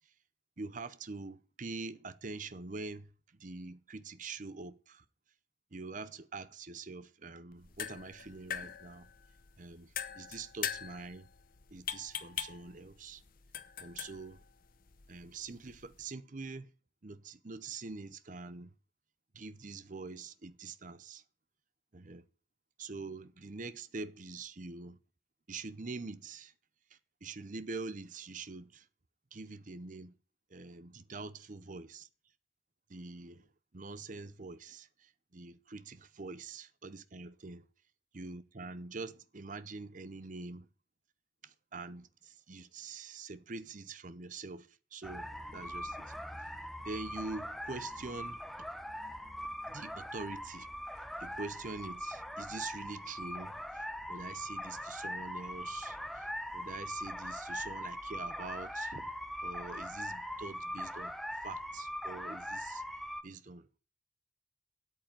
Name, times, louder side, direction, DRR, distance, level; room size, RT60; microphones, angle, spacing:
voice 1, 0.6-3.1 3.4-5.0 5.7-9.1 9.6-11.3 11.7-13.2 13.8-14.4 15.1-16.7 17.0-18.7 19.3-21.2 21.9-22.2 22.8-25.0 25.5-26.5 26.9-28.9 29.3-30.1 30.5-32.1 32.9-33.5 33.7-37.6 38.1-40.7 41.4-46.2 46.8-48.4 49.7-50.7 51.2-59.1 59.4-61.1 61.4-62.8 63.2-63.8, right 3 dB, 40° right, 0.7 m, -45 dB
sound 1, 7.5-16.1, left 9 dB, 45° left, 0.8 m, -43 dB
sound 2, 45.0-63.2, equal, ahead, 0.7 m, -41 dB
8.7 x 8.3 x 9.1 m
head